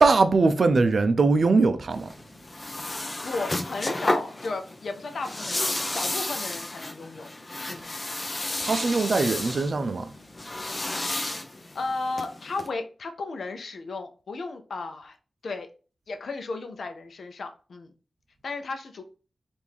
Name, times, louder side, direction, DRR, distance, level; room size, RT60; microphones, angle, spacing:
voice 1, 0.0-2.1 8.6-10.1, right 3 dB, 60° right, 0.4 m, -21 dB
sound 1, 1.9-12.7, left 2 dB, 30° left, 0.6 m, -32 dB
voice 2, 3.2-7.3 7.7-7.9 11.7-15.2 15.4-15.7 16.1-17.9 18.4-19.0, left 3 dB, 80° left, 0.6 m, -34 dB
4.5 x 2.5 x 3.5 m
wide cardioid pair, 100°, 0 cm